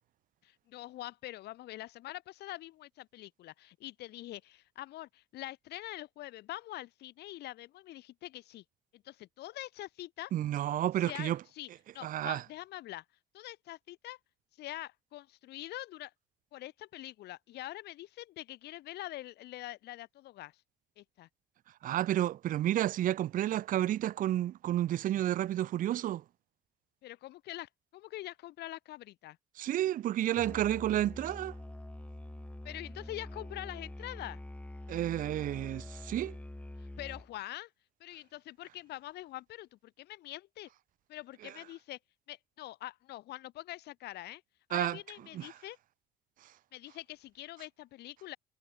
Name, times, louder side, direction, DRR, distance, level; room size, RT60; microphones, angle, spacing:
voice 1, 0.4-8.6 8.9-10.3 11.0-11.7 11.9-13.0 13.3-14.2 14.6-16.1 16.5-20.5 21.0-21.3 27.0-29.4 32.6-34.4 36.8-37.7 38.0-40.7 41.1-42.0 42.3-44.4 44.7-45.8 46.7-48.4, left 15 dB, 75° left, 4.8 m, -44 dB
voice 2, 10.3-11.4 12.0-12.4 21.8-26.2 29.6-31.5 34.9-36.4 44.7-45.0 45.3-45.5, right 13 dB, 55° right, 0.6 m, -31 dB
Musical instrument, 30.4-37.4, left 1 dB, 10° left, 4.7 m, -45 dB
cardioid pair, 110°, 17 cm